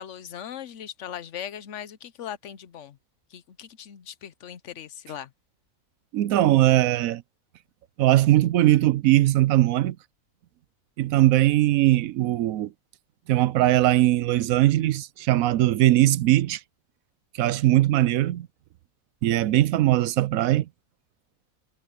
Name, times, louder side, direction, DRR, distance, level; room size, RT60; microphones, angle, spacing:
voice 1, 0.0-3.0 3.3-5.3, left 9 dB, 60° left, 1.1 m, -39 dB
voice 2, 6.1-7.2 8.0-10.0 11.0-12.7 13.3-16.6 17.4-18.5 19.2-20.7, right 15 dB, 80° right, 1.0 m, -20 dB
omnidirectional pair, 1.5 m